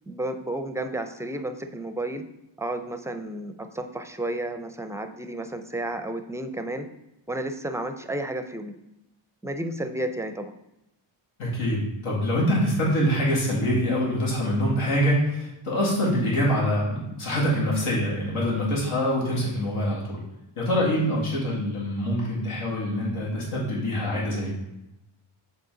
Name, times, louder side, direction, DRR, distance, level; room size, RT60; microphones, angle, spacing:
voice 1, 0.1-2.2 2.6-6.9 7.3-8.7 9.4-10.5, right 1 dB, 5° right, 7 dB, 0.4 m, -32 dB
voice 2, 11.4-20.2 20.6-24.5, equal, 90° left, -5 dB, 2.3 m, -25 dB
6.7 x 4.1 x 3.8 m, 0.91 s
cardioid pair, 90°, 49 cm